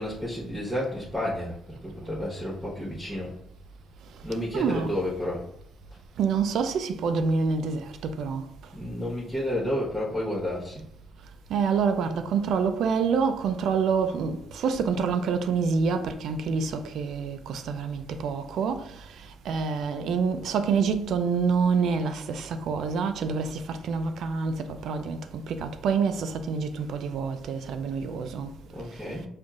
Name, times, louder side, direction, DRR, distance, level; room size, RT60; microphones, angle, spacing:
voice 1, 0.0-3.3 4.2-5.4 8.7-10.8 28.7-29.3, left 1 dB, 10° right, 1.1 m, -31 dB
voice 2, 4.5-4.9 6.2-8.5 11.5-28.5, right 5 dB, 75° right, 0.4 m, -27 dB
5.4 x 2.5 x 2.4 m
cardioid pair, 90°, 0 cm